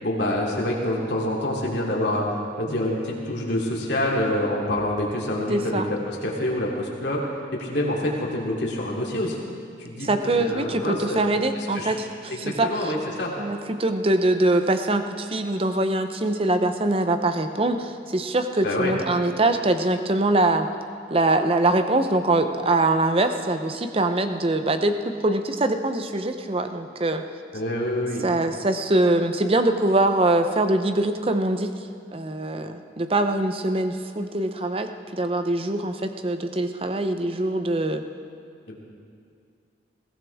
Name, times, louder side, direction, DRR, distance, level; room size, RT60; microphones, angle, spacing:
voice 1, 0.0-2.2 2.6-7.2 7.5-9.4 9.8-11.2 11.7-11.9 12.3-13.3 18.6-18.9 27.5-28.2 38.7-38.8, left 1 dB, 65° left, -3 dB, 2.9 m, -26 dB
voice 2, 5.5-5.9 10.0-12.9 13.4-20.7 21.1-27.2 28.2-38.0, right 2 dB, 30° right, 8 dB, 0.6 m, -23 dB
21.0 x 16.5 x 3.5 m, 2.3 s
head